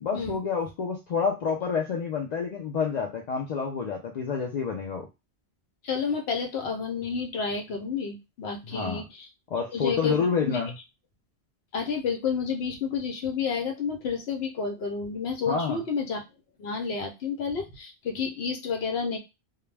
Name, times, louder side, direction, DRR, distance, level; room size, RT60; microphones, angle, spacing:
voice 1, 0.0-5.1 8.7-9.0 9.5-10.7 15.5-15.8, left 5 dB, 55° left, 1 dB, 0.5 m, -28 dB
voice 2, 5.8-9.3 9.7-10.6 11.7-16.2 16.6-19.2, left 5 dB, 75° left, 5 dB, 0.9 m, -30 dB
2.3 x 2.1 x 3.2 m, 0.24 s
omnidirectional pair, 1.1 m